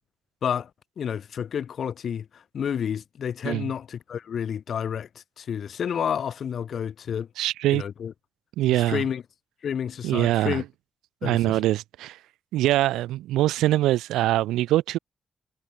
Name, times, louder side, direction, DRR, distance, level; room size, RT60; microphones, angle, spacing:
voice 1, 1.0-7.3 7.7-8.1 8.7-9.2 9.6-10.6 11.2-11.6, left 8 dB, 70° left, 1.6 m, -30 dB
voice 2, 7.4-7.8 8.6-9.0 10.0-10.6 11.2-12.2 12.5-15.0, right 15 dB, 85° right, 0.4 m, -23 dB
hypercardioid pair, 40°, 0 cm